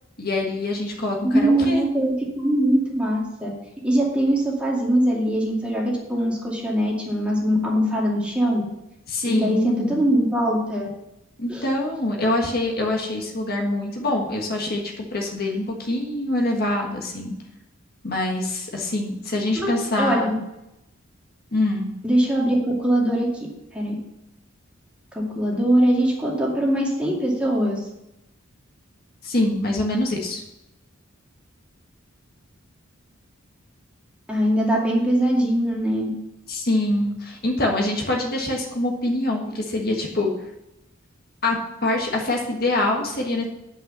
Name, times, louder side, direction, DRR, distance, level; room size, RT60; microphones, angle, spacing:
voice 1, 0.2-1.8 9.1-10.0 11.4-17.4 18.0-20.3 21.5-21.9 29.2-30.4 36.5-40.3 41.4-43.5, left 2 dB, 50° left, 0 dB, 1.5 m, -24 dB
voice 2, 1.2-3.5 3.8-8.6 9.3-10.9 11.5-11.6 19.5-20.3 22.0-23.3 23.7-24.0 25.1-27.8 34.3-36.1, right 1 dB, 5° right, -4 dB, 2.3 m, -22 dB
9.5 x 5.7 x 6.8 m, 0.89 s
head